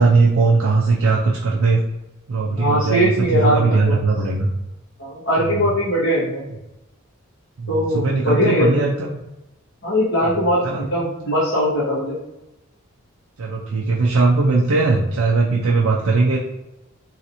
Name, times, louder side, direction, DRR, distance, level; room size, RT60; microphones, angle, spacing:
voice 1, 0.0-1.8 2.3-4.5 5.5-5.6 7.6-9.2 10.6-10.8 13.4-16.4, right 3 dB, 80° right, -2 dB, 0.4 m, -19 dB
voice 2, 2.6-4.0 5.0-6.4 7.7-8.9 9.8-12.1, equal, 55° left, -8 dB, 1.4 m, -20 dB
3.1 x 2.8 x 2.6 m, 0.94 s
head